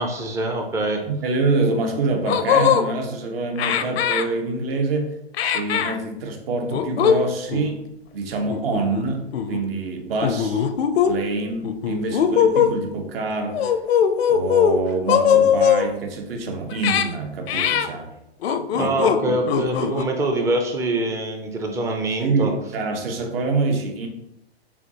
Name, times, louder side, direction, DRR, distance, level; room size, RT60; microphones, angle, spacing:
voice 1, 0.0-1.0 18.7-22.5, right 2 dB, 10° right, 3 dB, 0.4 m, -24 dB
voice 2, 1.1-5.2 5.4-7.9 8.1-10.7 11.1-13.7 14.3-18.1 18.8-19.4 22.2-24.1, right 3 dB, 65° right, 3 dB, 1.0 m, -26 dB
sound 1, 1.7-1.8 2.2-2.8 3.6-4.3 5.3-6.0 6.7-7.2 7.5-7.7 8.5-9.0 9.3-9.6 10.2-11.1 11.6-12.7 13.5-14.8 15.1-15.9 16.7-17.1 17.5-17.9 18.4-19.2 19.5-20.0, left 8 dB, 70° left, 0.5 m, -20 dB
6.9 x 2.4 x 2.8 m, 0.83 s
hypercardioid pair, 120°, 32 cm